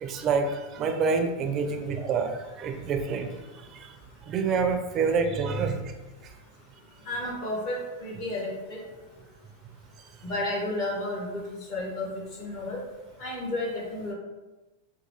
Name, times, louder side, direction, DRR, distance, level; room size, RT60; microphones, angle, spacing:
voice 1, 0.0-3.3 3.6-3.9 4.3-5.9, right 5 dB, 30° right, 6 dB, 0.4 m, -27 dB
voice 2, 7.0-8.8 10.2-11.4 11.7-12.1 12.4-12.8 13.2-14.1, left 1 dB, 45° left, -2 dB, 1.2 m, -32 dB
3.8 x 2.3 x 3.1 m, 1.1 s
supercardioid pair, 135°, 0 cm